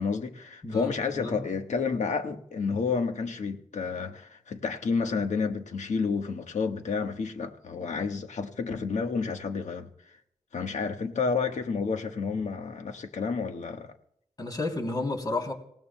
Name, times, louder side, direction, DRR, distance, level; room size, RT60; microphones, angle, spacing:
voice 1, 0.0-9.9 10.5-13.9, left 5 dB, 75° left, 1.4 m, -30 dB
voice 2, 0.6-1.5 14.4-15.5, left 2 dB, 35° left, 3.1 m, -32 dB
27.0 x 17.5 x 2.2 m
wide cardioid pair, 125°, 12 cm